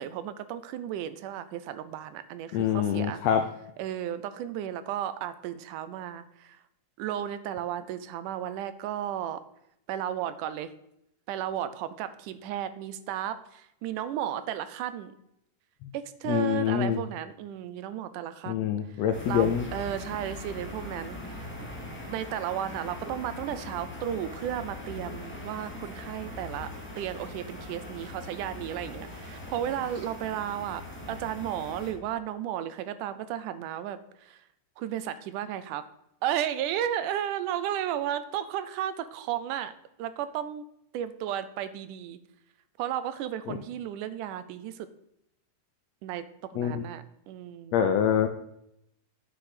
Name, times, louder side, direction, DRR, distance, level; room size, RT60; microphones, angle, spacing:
voice 1, 0.0-3.2 3.8-6.6 7.0-9.4 9.9-10.7 11.3-15.1 15.9-21.5 22.1-34.4 34.8-35.8 36.2-39.7 40.0-40.6 40.9-42.2 42.8-44.9 46.0-47.8, right 10 dB, 80° right, 13 dB, 2.1 m, -34 dB
voice 2, 2.5-3.4 15.8-15.9 16.3-17.0 18.5-19.6 43.5-43.6 46.6-46.8 47.7-48.3, left 9 dB, 80° left, 7 dB, 1.5 m, -25 dB
sound 1, 19.1-31.9, left 1 dB, 5° left, 1.4 m, -41 dB
10.0 x 6.0 x 4.9 m, 0.78 s
omnidirectional pair, 3.7 m